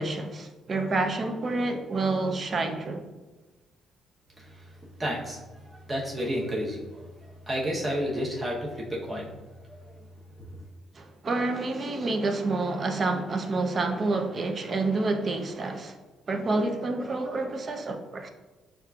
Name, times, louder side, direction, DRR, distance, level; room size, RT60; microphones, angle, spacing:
voice 1, 0.0-3.0 10.9-16.0 16.3-18.3, right 3 dB, 30° right, 0.4 m, -28 dB
voice 2, 4.4-4.7 5.0-7.1 7.5-9.4 9.7-10.0 10.4-10.5, equal, 15° right, 0.8 m, -32 dB
7.0 x 2.4 x 2.3 m
cardioid pair, 150°, 0 cm